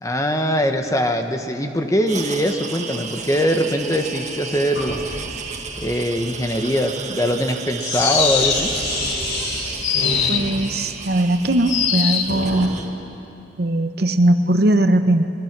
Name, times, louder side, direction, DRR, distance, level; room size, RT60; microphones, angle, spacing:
voice 1, 0.0-5.0 5.8-8.7, equal, 20° left, 5 dB, 1.2 m, -22 dB
sound 1, 2.1-12.9, right 5 dB, 40° right, 1.5 m, -34 dB
Sink (filling or washing), 4.7-12.7, left 1 dB, 65° left, 5.6 m, -29 dB
sound 2, 8.0-8.8 9.8-10.6 11.7-12.4, left 8 dB, 80° left, 1.2 m, -21 dB
voice 2, 10.3-12.8 13.6-15.3, right 1 dB, 55° right, 8 dB, 0.9 m, -19 dB
28.0 x 21.0 x 6.1 m, 2.9 s
head